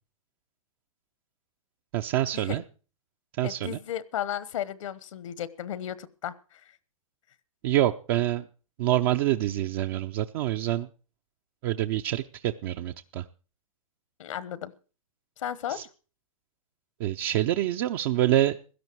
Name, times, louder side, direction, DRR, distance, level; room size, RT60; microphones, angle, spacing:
voice 1, 1.9-2.6 3.4-3.8 7.6-8.4 8.8-10.9 11.6-13.2 15.7-15.8 17.0-18.6, right 13 dB, 45° right, 6 dB, 0.7 m, -26 dB
voice 2, 3.4-6.6 14.2-14.7 15.4-15.8, left 10 dB, 65° left, 19 dB, 1.2 m, -34 dB
16.5 x 12.0 x 4.6 m, 0.37 s
hypercardioid pair, 135°, 18 cm